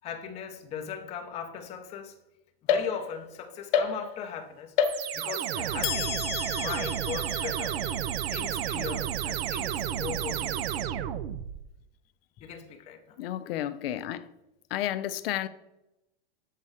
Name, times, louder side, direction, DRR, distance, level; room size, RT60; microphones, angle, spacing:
voice 1, 0.0-2.2 2.6-4.7 5.1-6.3 6.6-7.8 8.3-10.8 12.4-13.2, left 7 dB, 20° left, 0.6 m, -39 dB
sound 1, 2.7-3.3 3.7-4.4 4.8-5.4 5.8-9.3, left 7 dB, 55° left, 0.9 m, -31 dB
sound 2, 4.8-11.6, right 10 dB, 90° right, 0.6 m, -31 dB
voice 2, 13.2-14.3 14.7-15.5, left 12 dB, 70° left, 0.5 m, -32 dB
7.4 x 4.2 x 4.9 m
supercardioid pair, 165°, 30 cm